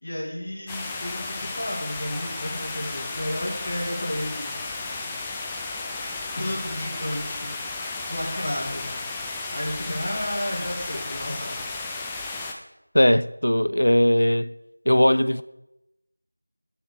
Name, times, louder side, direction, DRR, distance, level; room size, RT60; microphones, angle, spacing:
voice 1, 0.0-5.2 6.3-7.5 8.1-9.1 9.5-11.6, left 1 dB, 35° left, 2.4 m, -32 dB
sound 1, 0.7-12.5, left 3 dB, 5° left, 0.4 m, -33 dB
voice 2, 12.9-14.5 14.9-15.4, left 1 dB, 80° left, 0.5 m, -19 dB
7.6 x 5.7 x 6.7 m
figure-of-eight pair, 175°, 0 cm